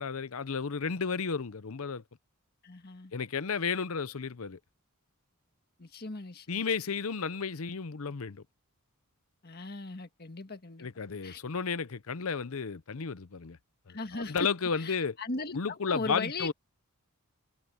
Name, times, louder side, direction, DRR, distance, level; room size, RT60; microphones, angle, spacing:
voice 1, 0.0-2.0 3.1-4.6 6.5-8.4 10.8-13.6 13.9-15.2 15.5-16.5, left 5 dB, 70° left, 0.7 m, -33 dB
voice 2, 2.6-3.1 5.8-6.7 9.4-10.9 11.2-11.4 13.9-14.5 14.7-16.5, left 3 dB, 45° left, 1.6 m, -38 dB
head